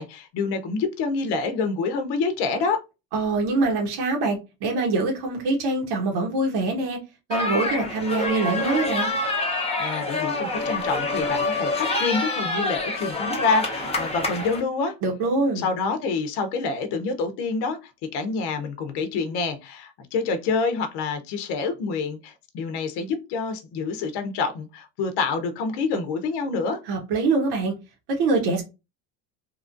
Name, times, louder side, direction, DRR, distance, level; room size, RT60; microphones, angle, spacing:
voice 1, 0.0-2.8 9.8-14.9 15.6-26.8, left 4 dB, 60° left, 0.8 m, -27 dB
voice 2, 3.1-7.0 7.3-9.1 15.0-15.7 26.9-27.7 28.2-28.6, right 3 dB, 55° right, 1.1 m, -24 dB
sound 1, 7.3-14.6, left 2 dB, 15° left, 0.8 m, -27 dB
3.1 x 2.4 x 2.5 m
supercardioid pair, 95°, 46 cm